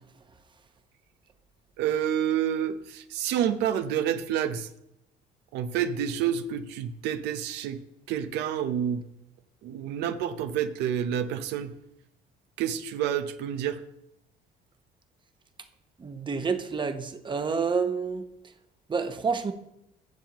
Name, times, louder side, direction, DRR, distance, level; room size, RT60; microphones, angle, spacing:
voice 1, 1.8-4.7 5.5-7.8 8.1-9.0 9.6-11.7 12.6-13.8, right 9 dB, 90° right, 10 dB, 0.8 m, -28 dB
voice 2, 16.0-18.3 18.9-19.5, right 5 dB, 30° right, 8 dB, 0.9 m, -28 dB
15.5 x 7.2 x 3.0 m, 0.82 s
cardioid pair, 110°, 17 cm